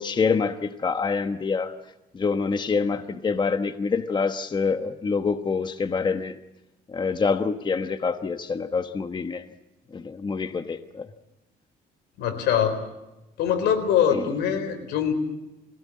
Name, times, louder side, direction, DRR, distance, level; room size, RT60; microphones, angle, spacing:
voice 1, 0.0-1.7 2.1-6.4 6.9-9.5 9.9-11.1 14.1-14.3, left 5 dB, 25° left, 9 dB, 1.1 m, -26 dB
voice 2, 12.2-12.8 13.4-15.1, left 8 dB, 85° left, 9 dB, 4.1 m, -23 dB
23.5 x 17.0 x 8.5 m, 0.96 s
cardioid pair, 110°, 17 cm